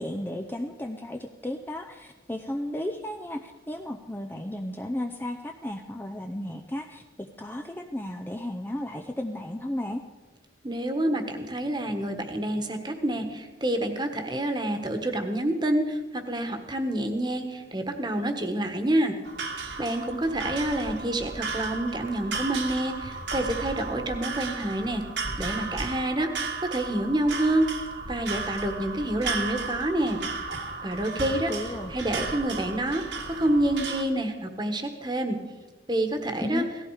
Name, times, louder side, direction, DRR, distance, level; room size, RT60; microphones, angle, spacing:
voice 1, 0.0-10.0 31.3-31.9 36.4-36.7, left 1 dB, 10° left, 4 dB, 0.5 m, -34 dB
voice 2, 10.6-19.1 19.8-25.0 25.4-27.7 28.1-30.2 30.8-31.5 31.9-33.0 33.3-35.4 35.9-36.6, right 1 dB, 25° right, 6 dB, 1.4 m, -28 dB
sound 1, 19.2-34.0, right 4 dB, 75° right, 2.0 m, -34 dB
17.5 x 14.5 x 4.9 m, 1.2 s
head